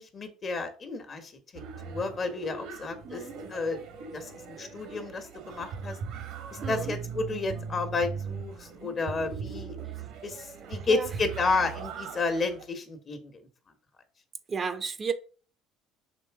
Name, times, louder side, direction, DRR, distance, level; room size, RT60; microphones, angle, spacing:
voice 1, 0.0-3.2 3.5-3.8 4.1-6.0 6.5-9.8 10.2-13.3, left 3 dB, 40° left, 1.5 m, -31 dB
sound 1, 1.5-12.6, right 6 dB, 70° right, 1.3 m, -39 dB
voice 2, 3.0-3.4 6.6-6.9 10.6-11.1 14.5-15.1, right 5 dB, 35° right, 0.8 m, -33 dB
6.0 x 3.3 x 4.9 m
hypercardioid pair, 65°, 0 cm